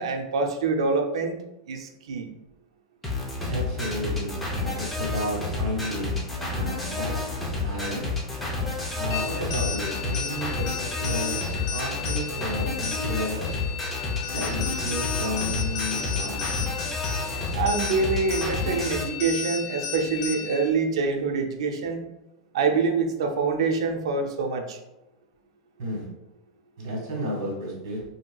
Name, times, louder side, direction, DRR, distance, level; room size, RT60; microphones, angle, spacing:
voice 1, 0.0-1.4 1.7-2.3 17.5-22.0 22.5-24.8, right 4 dB, 85° right, 4 dB, 0.5 m, -25 dB
sound 1, 3.0-19.0, left 3 dB, 5° left, 0.5 m, -30 dB
voice 2, 3.5-6.2 6.4-7.1 7.6-8.1 8.9-10.7 11.0-11.4 11.7-13.4 14.3-16.4 25.8-26.0 26.8-28.0, equal, 60° right, -3 dB, 1.4 m, -32 dB
sound 2, 9.1-20.7, left 7 dB, 70° left, 0.4 m, -34 dB
3.1 x 2.7 x 2.2 m, 0.94 s
supercardioid pair, 165°, 3 cm